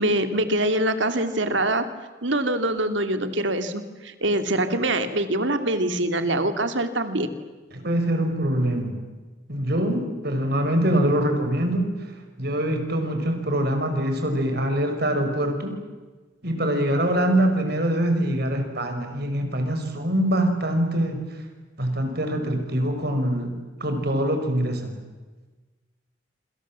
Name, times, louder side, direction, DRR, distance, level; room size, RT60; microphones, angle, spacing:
voice 1, 0.0-1.8 2.2-7.3, right 1 dB, 75° right, 9 dB, 2.5 m, -24 dB
voice 2, 7.7-9.0 9.5-11.9 12.4-15.8 16.4-21.3 21.8-25.0, right 1 dB, 55° right, 5 dB, 5.5 m, -24 dB
27.5 x 27.0 x 7.5 m, 1.3 s
head